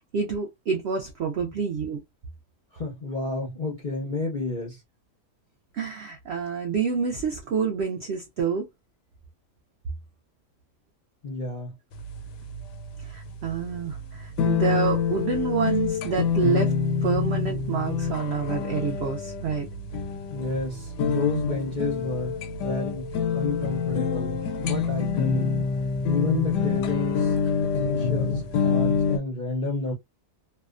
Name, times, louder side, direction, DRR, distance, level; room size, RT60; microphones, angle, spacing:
voice 1, 0.1-2.0 5.7-8.7 13.0-19.7, right 6 dB, 80° right, 0.5 m, -28 dB
voice 2, 2.7-4.8 11.2-11.8 20.3-25.5 26.1-27.4 27.7-29.9, left 2 dB, 55° left, 0.5 m, -31 dB
sound 1, 11.9-29.2, left 6 dB, 85° left, 1.2 m, -26 dB
2.7 x 2.2 x 2.4 m
omnidirectional pair, 1.7 m